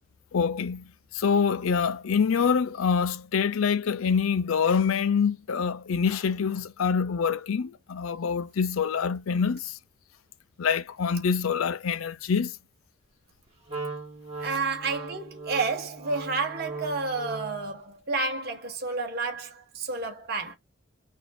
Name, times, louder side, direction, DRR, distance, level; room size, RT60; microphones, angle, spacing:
voice 1, 0.3-9.8 10.6-12.6, left 6 dB, 85° left, 0.5 m, -26 dB
Wind instrument woodwind instrument, 13.7-17.7, right 3 dB, 30° right, 1.8 m, -38 dB
voice 2, 14.4-20.5, right 3 dB, 50° right, 1.0 m, -30 dB
4.1 x 2.6 x 4.1 m
head